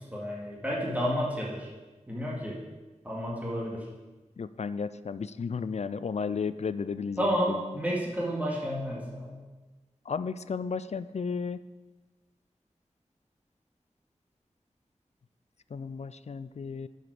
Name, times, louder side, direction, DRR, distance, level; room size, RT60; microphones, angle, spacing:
voice 1, 0.1-1.7 2.1-2.6 3.0-3.8 7.2-9.4, equal, 10° right, -4 dB, 2.2 m, -31 dB
voice 2, 4.4-7.3 10.1-11.6 15.7-16.9, left 5 dB, 60° left, 15 dB, 0.4 m, -33 dB
9.7 x 7.1 x 4.9 m, 1.2 s
wide cardioid pair, 65°, 12 cm